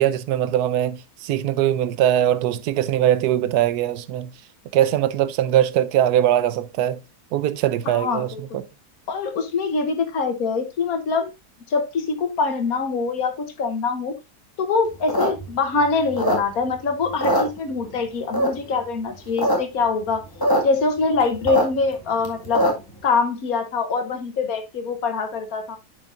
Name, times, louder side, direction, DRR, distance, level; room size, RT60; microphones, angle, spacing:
voice 1, 0.0-4.3 4.7-7.0 7.3-8.6, right 11 dB, 80° right, 1.1 m, -21 dB
voice 2, 7.9-8.6 9.1-11.3 11.7-14.1 14.6-20.2 20.6-22.6 23.0-25.8, left 4 dB, 65° left, 1.5 m, -24 dB
sound 1, 14.9-16.8 17.1-18.0 18.3-18.8 19.2-19.6 19.8-19.9 20.1-20.6 21.0-23.0, equal, 15° left, 1.8 m, -22 dB
10.5 x 5.2 x 2.5 m
omnidirectional pair, 1.7 m